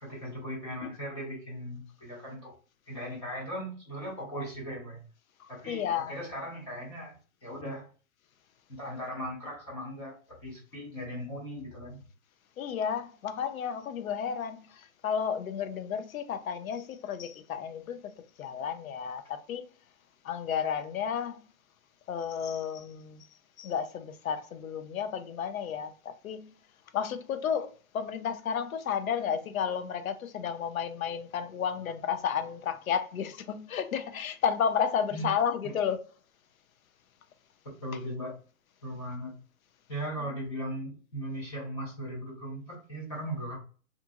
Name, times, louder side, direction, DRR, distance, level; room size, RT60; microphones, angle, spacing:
voice 1, 0.0-2.6 2.9-5.0 5.5-7.1 7.4-7.9 8.7-12.0 35.1-35.2 35.6-35.7 37.8-38.4 38.8-39.4 39.9-43.6, equal, 20° left, 0.8 m, -38 dB
voice 2, 5.4-6.1 12.6-18.1 18.4-19.6 20.2-21.4 22.1-23.3 23.6-26.5 26.9-36.0 40.2-40.3, left 7 dB, 75° left, 0.6 m, -32 dB
2.9 x 2.5 x 2.3 m
hypercardioid pair, 165°, 42 cm